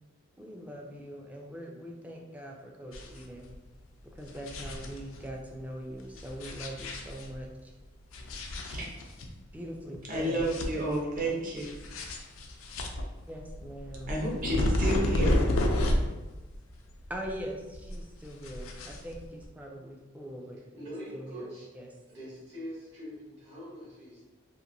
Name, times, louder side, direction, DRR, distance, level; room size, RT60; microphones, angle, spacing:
voice 1, 0.4-3.5 4.0-7.7 9.5-10.5 11.2-11.3 13.3-14.2 14.6-15.0 17.1-21.9, equal, 5° right, 0.3 m, -42 dB
sound 1, 2.9-3.3 3.5-3.6 4.1-5.3 6.1-7.4 8.1-9.3 9.7-9.8 10.1-11.2 11.5-16.3 16.5-17.5 17.7-19.4, left 1 dB, 85° left, 0.4 m, -31 dB
voice 2, 10.0-11.7 14.1-15.4, right 1 dB, 40° right, 0.7 m, -31 dB
voice 3, 20.7-21.7 22.1-24.2, equal, 60° right, 1.2 m, -43 dB
2.9 x 2.5 x 2.6 m
head